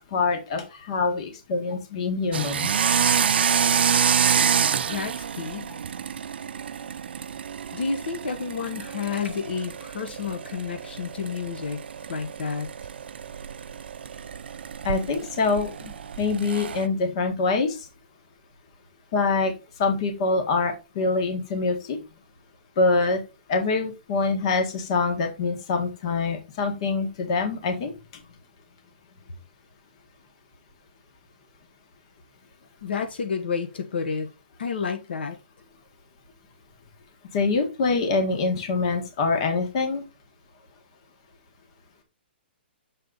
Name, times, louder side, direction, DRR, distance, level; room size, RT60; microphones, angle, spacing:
voice 1, 0.1-2.7 4.0-4.1 14.8-17.8 19.1-19.5 19.8-22.0 22.8-23.2 23.5-27.9 37.3-40.0, left 3 dB, 30° left, 1.6 m, -25 dB
sound 1, 2.3-16.9, right 7 dB, 70° right, 0.4 m, -27 dB
voice 2, 4.9-5.7 7.7-11.8 12.1-12.7 32.8-34.3 34.6-35.4, left 5 dB, 70° left, 1.2 m, -30 dB
6.7 x 4.4 x 3.9 m
hypercardioid pair, 175°, 6 cm